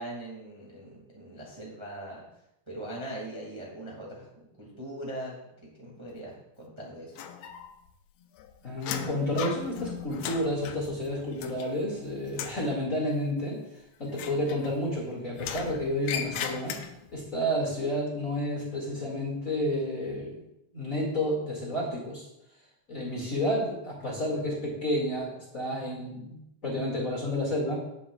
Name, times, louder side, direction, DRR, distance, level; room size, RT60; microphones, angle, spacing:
voice 1, 0.0-2.2 2.7-4.3 4.6-5.4 5.8-7.1, right 1 dB, 20° right, -3 dB, 0.8 m, -40 dB
sound 1, 7.2-7.9 8.2-12.0 12.3-12.7 14.1-15.0 15.4-17.2, left 9 dB, 85° left, 2.6 m, -38 dB
voice 2, 8.6-13.6 14.0-16.8 17.1-20.4 20.7-22.3 22.9-27.8, left 1 dB, 30° left, -4 dB, 1.7 m, -30 dB
17.0 x 7.4 x 2.3 m, 0.84 s
omnidirectional pair, 4.3 m